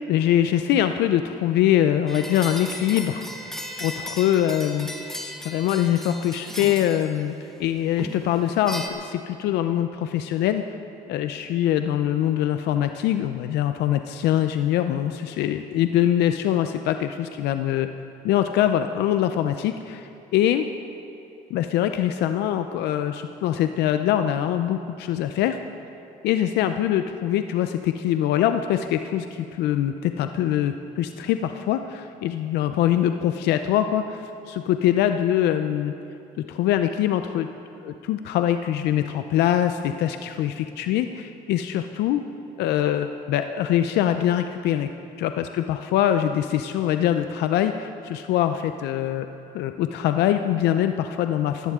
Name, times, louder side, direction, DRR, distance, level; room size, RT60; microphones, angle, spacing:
voice 1, 0.1-3.3 3.8-4.9 5.4-7.3 7.6-10.6 11.1-17.9 18.2-20.6 21.5-25.6 26.2-35.9 36.5-37.5 37.8-42.2 42.6-44.9 45.2-49.3 49.5-51.7, left 11 dB, 80° left, 8 dB, 0.6 m, -23 dB
sound 1, 2.1-7.4 8.0-8.9, equal, 5° left, 1.4 m, -36 dB
16.5 x 16.5 x 3.7 m, 2.8 s
cardioid pair, 110°, 17 cm